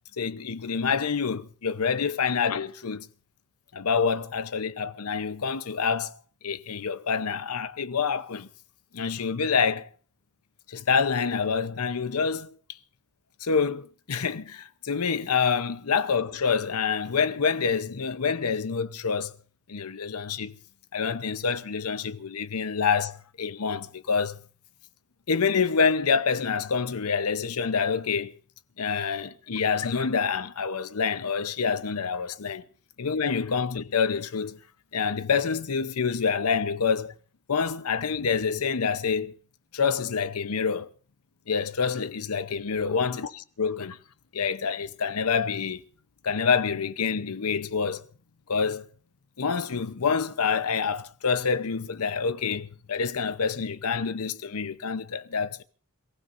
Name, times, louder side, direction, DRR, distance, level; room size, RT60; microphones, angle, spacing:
voice 1, 0.2-3.1 3.7-6.1 6.4-8.5 8.9-9.9 10.7-12.6 13.4-19.3 19.7-20.5 20.9-24.4 25.3-28.4 28.8-32.6 33.0-34.6 34.9-37.1 37.5-39.3 39.7-40.9 41.5-44.0 44.3-45.8 46.2-48.0 48.5-48.9 49.4-55.6, left 5 dB, 90° left, 0.8 m, -27 dB
28.5 x 15.5 x 2.6 m
head